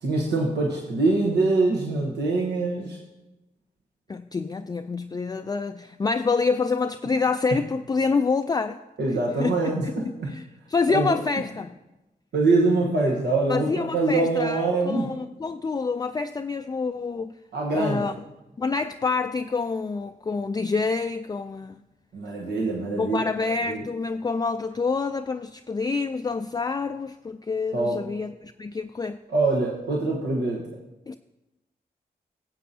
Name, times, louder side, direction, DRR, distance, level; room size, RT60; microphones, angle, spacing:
voice 1, 0.0-3.0 9.0-10.3 10.9-11.2 12.3-15.1 17.5-18.0 22.1-23.3 23.7-23.8 27.7-28.0 29.3-30.7, right 3 dB, 80° right, -2 dB, 1.1 m, -24 dB
voice 2, 4.1-8.8 9.4-9.6 10.2-11.7 13.5-17.3 17.7-18.1 18.6-21.8 23.0-29.2 31.1-31.2, left 4 dB, 25° left, 7 dB, 0.3 m, -27 dB
16.0 x 7.5 x 2.7 m, 0.99 s
cardioid pair, 45°, 17 cm